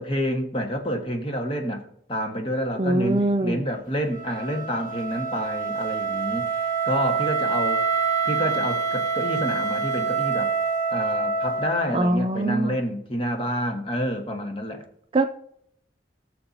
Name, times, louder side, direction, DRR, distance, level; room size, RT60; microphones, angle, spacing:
voice 1, 0.0-1.8 2.1-6.5 6.8-8.0 8.2-10.5 10.9-14.8, equal, 30° left, 3 dB, 1.5 m, -28 dB
voice 2, 2.8-3.6 11.9-12.8 15.1-15.3, right 1 dB, 30° right, 8 dB, 0.4 m, -22 dB
Wind instrument woodwind instrument, 4.1-12.1, right 5 dB, 50° left, 2.3 m, -26 dB
18.5 x 6.7 x 2.8 m, 0.69 s
head